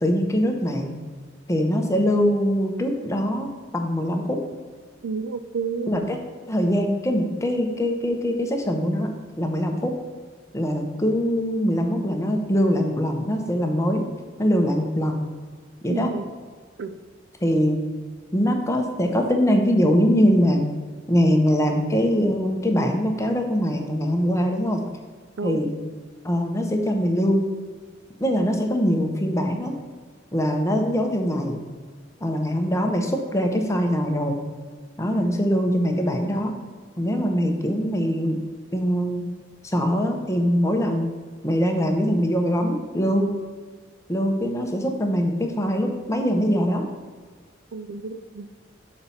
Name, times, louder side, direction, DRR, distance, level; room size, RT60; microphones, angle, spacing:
voice 1, 0.0-1.0 1.5-4.4 5.9-6.2 6.5-9.1 9.4-9.9 10.5-14.0 14.4-15.2 15.8-16.1 17.4-17.8 18.3-20.7 21.1-24.8 25.4-25.7 26.2-27.4 28.2-29.7 30.3-31.6 32.2-34.4 35.0-36.5 37.0-38.4 38.7-39.2 39.6-41.1 41.4-43.3 44.1-46.8, equal, 15° left, 3 dB, 0.8 m, -22 dB
voice 2, 5.0-6.0 15.9-16.3 16.8-16.9 25.4-25.6 47.7-48.5, right 5 dB, 75° right, 11 dB, 0.4 m, -30 dB
6.6 x 4.2 x 5.6 m, 1.5 s
head